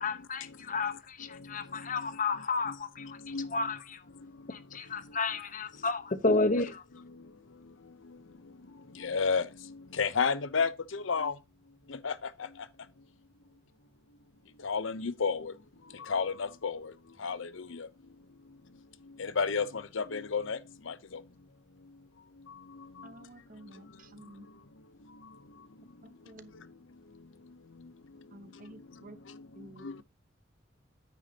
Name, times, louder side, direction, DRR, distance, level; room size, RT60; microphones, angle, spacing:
voice 1, 0.0-3.2 3.5-4.0 4.5-6.8, left 3 dB, 40° left, 0.9 m, -31 dB
voice 2, 2.6-3.7 9.0-11.4 11.9-12.5 14.6-15.5 15.9-16.9 17.2-17.9 19.2-20.6 20.9-21.2 23.0-23.1 29.3-29.4 29.8-30.0, left 5 dB, 80° left, 0.7 m, -32 dB
voice 3, 23.0-24.5 26.0-26.5 28.3-29.2 29.5-30.0, right 1 dB, 45° right, 1.0 m, -51 dB
9.5 x 9.0 x 2.8 m
head